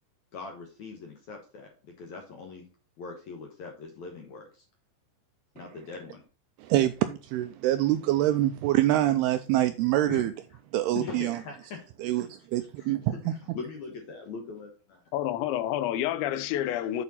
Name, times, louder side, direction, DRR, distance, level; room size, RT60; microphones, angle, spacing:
voice 1, 0.3-2.7 3.0-4.6 5.5-6.2 10.1-10.3 10.9-12.3 12.8-15.0, left 4 dB, 70° left, 1.8 m, -41 dB
voice 2, 6.6-10.3 10.7-11.4 12.0-13.3, right 14 dB, 85° right, 2.3 m, -25 dB
voice 3, 15.1-17.0, left 12 dB, 90° left, 3.1 m, -29 dB
8.8 x 4.8 x 4.2 m
omnidirectional pair, 5.1 m